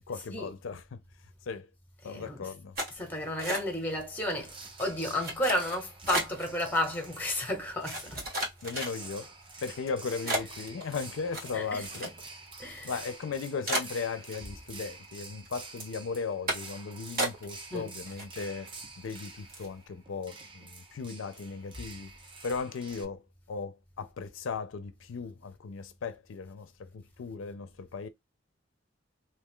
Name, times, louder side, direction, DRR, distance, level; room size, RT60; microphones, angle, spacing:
voice 1, 0.1-1.0 1.5-1.7 2.0-2.7 8.6-9.3 9.6-12.1 12.8-18.7 19.0-22.1 22.4-23.2 23.5-28.1, left 5 dB, 80° left, 0.4 m, -37 dB
voice 2, 2.0-2.5 2.9-8.3 10.2-10.4 11.5-12.1 12.6-12.9 17.7-17.9, left 1 dB, 10° left, 1.0 m, -32 dB
sound 1, 2.7-4.0 4.3-4.7 5.2-6.5 7.1-7.2 7.8-9.3 9.8-9.9 10.3-12.5 12.8-12.9 13.2-13.3 13.6-14.7 15.0-15.5 15.8-16.0 16.5-16.8 17.2-17.8 18.0-18.7 19.0-19.2 19.5-19.7, right 1 dB, 50° right, 1.4 m, -34 dB
sound 2, 4.4-23.0, right 3 dB, 25° right, 0.6 m, -48 dB
2.8 x 2.3 x 3.6 m
head